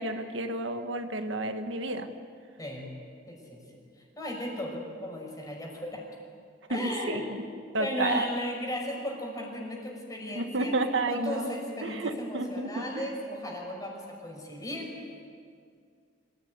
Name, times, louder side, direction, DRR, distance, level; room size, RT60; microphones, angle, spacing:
voice 1, 0.0-2.1 6.7-7.4 7.7-8.3 10.3-11.5 11.8-13.1, right 2 dB, 85° right, 6 dB, 1.6 m, -31 dB
voice 2, 3.3-3.8 4.2-6.0 6.7-7.3 7.8-10.8 11.1-14.9, left 1 dB, 20° left, 0 dB, 5.7 m, -35 dB
26.0 x 16.0 x 9.6 m, 2.2 s
head